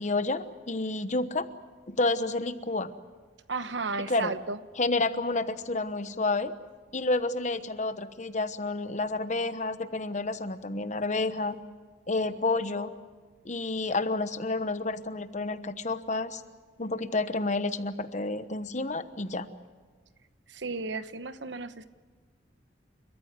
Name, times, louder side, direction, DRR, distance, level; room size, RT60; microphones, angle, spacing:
voice 1, 0.0-1.4 1.9-2.9 4.1-4.3 4.8-6.5 6.9-11.5 12.1-12.9 13.4-16.4 16.8-19.5, left 2 dB, 40° left, 11 dB, 1.1 m, -30 dB
voice 2, 3.5-4.6 20.5-21.9, right 3 dB, 75° right, 12 dB, 1.1 m, -34 dB
30.0 x 14.5 x 9.6 m, 1.4 s
head